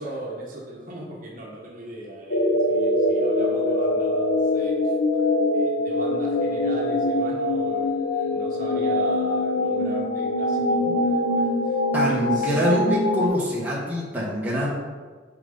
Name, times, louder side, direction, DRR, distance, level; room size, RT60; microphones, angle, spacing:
voice 1, 0.0-4.9 5.5-12.7, right 2 dB, 45° right, -3 dB, 1.3 m, -38 dB
sound 1, 2.3-13.3, left 1 dB, 75° left, 0.8 m, -23 dB
voice 2, 11.9-14.7, equal, 10° right, -6 dB, 1.3 m, -24 dB
8.8 x 4.0 x 3.9 m, 1.5 s
head